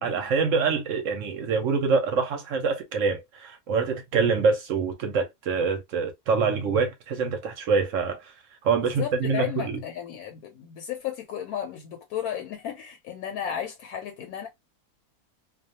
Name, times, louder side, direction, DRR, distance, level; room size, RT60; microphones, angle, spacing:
voice 1, 0.0-8.3 8.6-9.8, right 5 dB, 65° right, 0.8 m, -25 dB
voice 2, 8.9-14.5, left 9 dB, 80° left, 1.1 m, -34 dB
2.4 x 2.3 x 2.6 m
omnidirectional pair, 1.6 m